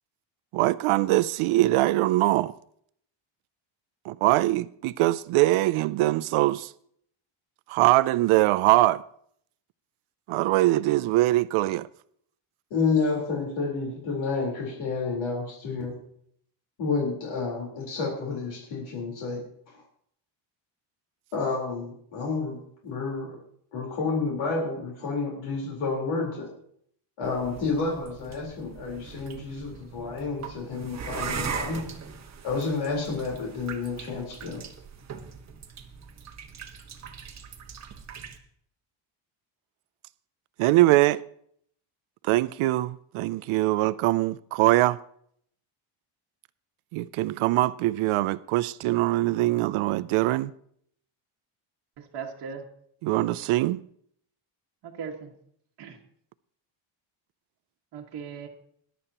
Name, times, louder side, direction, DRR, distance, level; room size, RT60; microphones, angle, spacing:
voice 1, 0.5-2.5 4.0-6.7 7.7-9.0 10.3-11.9 40.6-41.2 42.2-45.0 46.9-50.5 53.0-53.8, right 17 dB, 80° right, 0.5 m, -22 dB
voice 2, 12.7-15.9 16.8-19.4 19.7-19.8 21.3-23.4 23.7-26.5 27.2-31.9 32.4-34.6, left 4 dB, 75° left, 4.1 m, -30 dB
sound 1, 27.2-38.4, right 6 dB, 35° right, 1.4 m, -40 dB
voice 3, 52.0-52.6 54.8-55.3 55.8-56.0 57.9-58.5, right 6 dB, 55° right, 1.7 m, -38 dB
20.5 x 11.0 x 2.9 m
cardioid pair, 155°, 49 cm